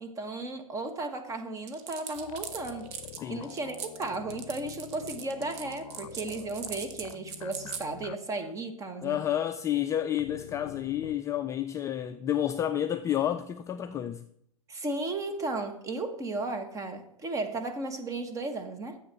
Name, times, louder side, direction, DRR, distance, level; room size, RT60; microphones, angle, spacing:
voice 1, 0.0-2.9 3.3-9.2 14.7-19.0, right 2 dB, 20° right, 1.3 m, -35 dB
sound 1, 1.7-7.9, right 8 dB, 40° right, 1.1 m, -40 dB
sound 2, 2.1-8.2 8.4-8.5 10.2-11.2, left 12 dB, 70° left, 0.6 m, -47 dB
voice 2, 9.0-14.2, left 11 dB, 15° left, 0.3 m, -30 dB
10.0 x 7.5 x 5.9 m
hypercardioid pair, 135°, 18 cm